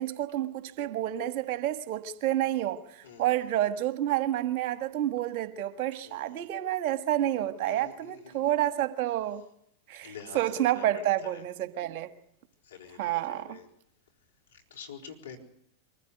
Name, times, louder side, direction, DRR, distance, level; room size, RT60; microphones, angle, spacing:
voice 1, 0.0-9.4 9.9-12.1 13.0-13.6, right 13 dB, 55° right, 1.6 m, -29 dB
voice 2, 3.0-3.5 6.0-6.5 7.7-8.5 10.0-11.4 12.6-13.7 14.5-15.4, left 7 dB, 75° left, 4.2 m, -47 dB
24.0 x 15.0 x 8.2 m
hypercardioid pair, 95°, 0 cm